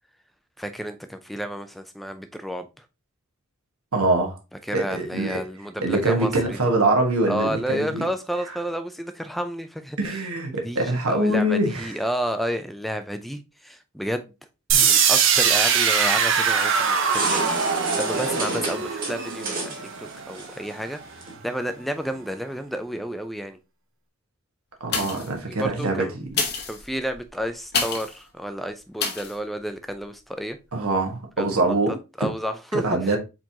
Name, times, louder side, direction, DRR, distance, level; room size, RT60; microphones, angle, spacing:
voice 1, 0.6-2.7 4.7-6.6 7.3-10.2 10.6-14.3 14.8-17.4 18.0-19.7 20.0-21.0 21.4-23.6 25.5-26.1 26.7-30.6 31.4-31.7 32.2-33.2, equal, ahead, 0.4 m, -31 dB
voice 2, 3.9-4.4 4.7-5.4 5.8-8.1 8.5-8.6 10.0-11.9 14.7-14.9 24.8-26.2 30.7-32.0 32.7-33.2, right 2 dB, 85° right, 1.3 m, -24 dB
sound 1, 14.7-20.6, right 6 dB, 55° right, 0.8 m, -22 dB
sound 2, 16.1-21.3, right 3 dB, 40° right, 1.7 m, -32 dB
sound 3, 24.8-25.4 26.2-28.2 29.0-29.4 29.9-30.0, left 5 dB, 45° left, 0.9 m, -28 dB
4.4 x 4.4 x 2.8 m
head